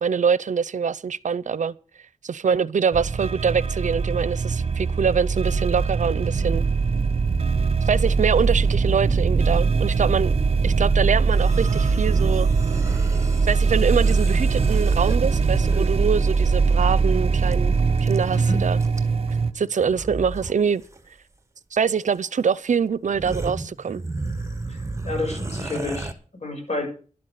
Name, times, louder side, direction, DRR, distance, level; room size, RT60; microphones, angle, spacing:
voice 1, 0.0-1.7 2.2-6.6 7.9-10.3 10.6-12.5 13.4-18.8 19.5-20.8 21.7-24.0, right 6 dB, 70° right, 0.6 m, -24 dB
sound 1, 2.9-19.5, right 4 dB, 50° right, 1.0 m, -21 dB
sound 2, 11.3-16.0 17.5-17.6 17.8-18.4 18.8-19.3 19.8-20.5 20.8-21.0 22.1-22.2 22.7-22.8 23.0-26.1, right 2 dB, 20° right, 1.4 m, -34 dB
voice 2, 25.0-26.1 26.4-26.9, left 2 dB, 60° left, 6.9 m, -29 dB
11.5 x 9.6 x 6.8 m
wide cardioid pair, 95°, 13 cm